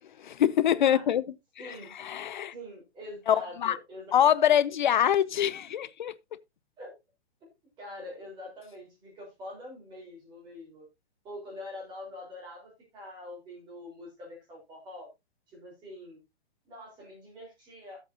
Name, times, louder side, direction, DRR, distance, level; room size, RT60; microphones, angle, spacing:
voice 1, 0.2-1.2 1.6-2.5 3.3-3.8 4.1-6.1, left 10 dB, 45° left, 0.5 m, -25 dB
voice 2, 1.6-2.0 2.5-4.5 6.8-6.9 7.4-7.5 7.8-10.9 11.2-15.1 15.5-16.2 16.7-18.0, left 1 dB, 15° right, 4.0 m, -45 dB
12.0 x 8.1 x 2.7 m
hypercardioid pair, 165°, 32 cm